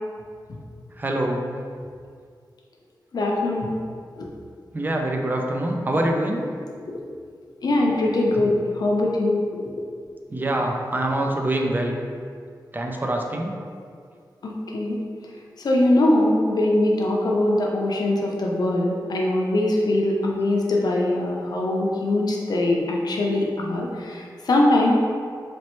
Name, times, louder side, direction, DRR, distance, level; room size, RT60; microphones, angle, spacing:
voice 1, 1.0-1.4 4.7-6.4 10.3-11.9 12.7-13.5, right 1 dB, 25° right, 1 dB, 0.4 m, -24 dB
voice 2, 3.1-3.7 4.2-4.3 6.8-7.0 7.6-9.4 14.4-15.0 15.6-24.9, left 1 dB, 60° left, -1 dB, 0.6 m, -22 dB
4.2 x 3.0 x 3.0 m, 2.1 s
wide cardioid pair, 155°, 8 cm